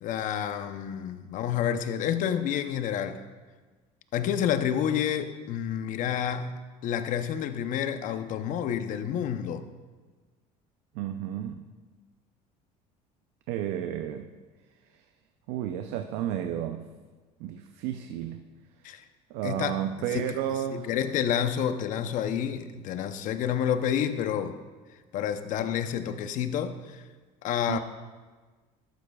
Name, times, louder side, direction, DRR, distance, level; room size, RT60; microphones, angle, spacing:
voice 1, 0.0-3.2 4.1-9.6 18.8-19.0 19.4-19.8 20.1-20.3 20.7-24.6 25.1-27.1 27.4-27.8, left 9 dB, 60° left, 9 dB, 0.8 m, -29 dB
voice 2, 10.9-11.6 13.5-14.3 14.9-15.0 15.5-16.9 17.4-18.4 19.3-20.9 27.7-27.8, right 10 dB, 85° right, 6 dB, 0.6 m, -32 dB
13.5 x 11.5 x 2.4 m, 1.4 s
cardioid pair, 110°, 15 cm